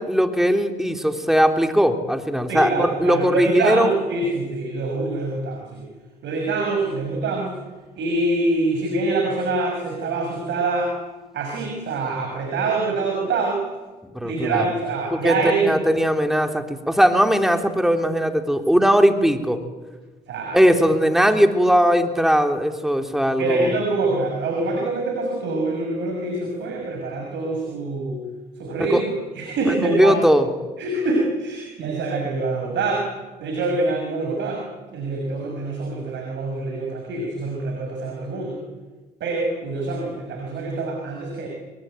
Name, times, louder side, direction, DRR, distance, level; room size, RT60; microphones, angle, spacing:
voice 1, 0.0-3.9 14.1-14.7 15.1-19.6 20.5-23.7 28.9-29.0 29.7-30.5, equal, ahead, 6 dB, 3.4 m, -19 dB
voice 2, 2.5-5.9 6.2-7.5 8.0-10.9 11.3-13.6 14.2-15.7 20.3-20.6 23.4-28.2 28.6-29.1 29.4-30.1 30.8-33.1 33.4-34.6 34.9-38.6 39.2-41.5, right 3 dB, 65° right, 2 dB, 6.1 m, -25 dB
28.5 x 23.0 x 9.2 m, 1.3 s
hypercardioid pair, 50°, 20 cm